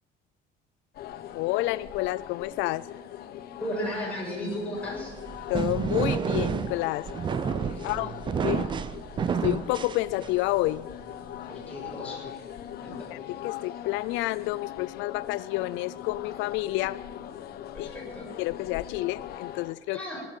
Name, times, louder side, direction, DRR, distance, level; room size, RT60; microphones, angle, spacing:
sound 1, 0.9-19.7, left 11 dB, 55° left, 0.9 m, -41 dB
voice 1, 1.3-2.9 5.5-7.1 7.8-8.7 9.4-10.9 12.9-17.0 17.8-17.9 18.4-20.0, left 18 dB, 90° left, 18 dB, 0.4 m, -29 dB
voice 2, 3.6-5.1 7.7-8.1 11.5-12.3 12.8-13.1 17.7-18.3 19.9-20.2, equal, 5° left, -3 dB, 6.3 m, -35 dB
sound 2, 4.9-10.6, right 7 dB, 25° right, 0.5 m, -30 dB
16.5 x 11.0 x 7.5 m, 1.3 s
cardioid pair, 155°, 19 cm